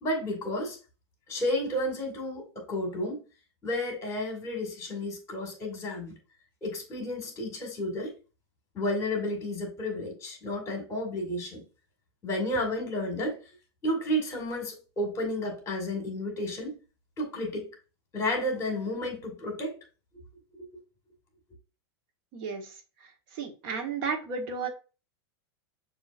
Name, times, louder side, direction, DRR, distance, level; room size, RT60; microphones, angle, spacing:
voice 1, 0.0-0.8 1.3-3.2 3.6-6.2 6.6-8.1 8.7-11.6 12.2-13.4 13.8-16.8 17.2-17.7 18.1-19.7, left 1 dB, 20° left, 2.2 m, -31 dB
voice 2, 22.3-22.7 23.0-24.7, right 5 dB, 55° right, 1.4 m, -33 dB
6.2 x 3.0 x 2.6 m
supercardioid pair, 135°, 13 cm